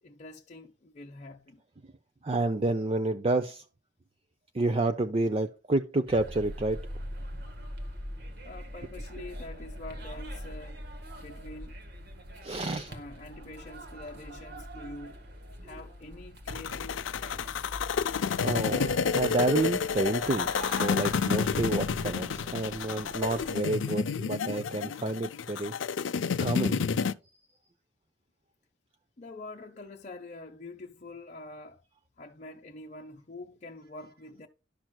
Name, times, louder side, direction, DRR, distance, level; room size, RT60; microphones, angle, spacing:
voice 1, 0.0-1.6 8.4-10.8 11.1-11.8 12.8-15.3 15.6-17.8 29.2-31.8 32.2-34.5, left 2 dB, 40° left, 0.7 m, -45 dB
voice 2, 2.2-3.6 4.5-6.9 12.4-12.9 18.4-25.7 26.0-26.1 26.4-26.8, right 2 dB, 30° right, 0.5 m, -29 dB
sound 1, 6.1-23.7, equal, 60° right, 1.7 m, -43 dB
sound 2, 16.5-27.1, left 6 dB, 80° left, 0.5 m, -30 dB
11.5 x 6.1 x 2.2 m
head